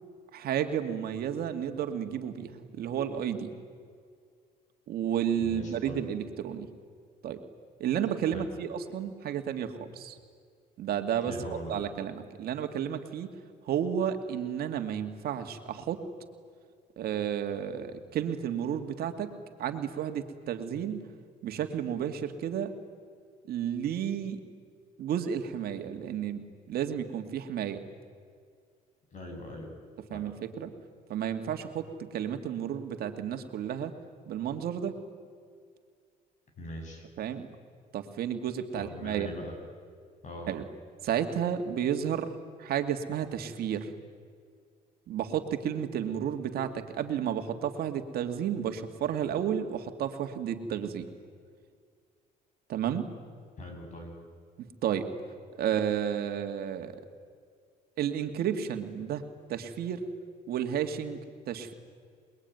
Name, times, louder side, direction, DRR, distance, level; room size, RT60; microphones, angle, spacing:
voice 1, 0.3-3.5 4.9-6.7 7.2-7.4 7.8-10.2 10.8-11.3 11.7-13.3 13.7-16.0 17.0-19.3 19.6-21.0 21.4-22.7 23.5-24.4 25.0-27.8 30.1-30.7 31.1-33.9 34.3-35.0 37.2-37.5 37.9-39.3 40.5-40.6 41.0-42.3 42.6-43.9 45.1-51.1 52.7-53.1 54.6-55.1 55.5-57.0 58.0-59.2 59.5-60.0 60.5-61.2 61.5-61.7, right 9 dB, 65° right, 6 dB, 2.3 m, -32 dB
voice 2, 5.4-6.0 8.3-8.5 11.2-11.9 29.1-29.7 30.1-30.3 36.6-37.1 38.7-39.5 40.2-40.5 53.6-54.2, left 1 dB, 45° left, 4 dB, 7.8 m, -41 dB
28.0 x 21.5 x 9.5 m, 2.1 s
cardioid pair, 110°, 17 cm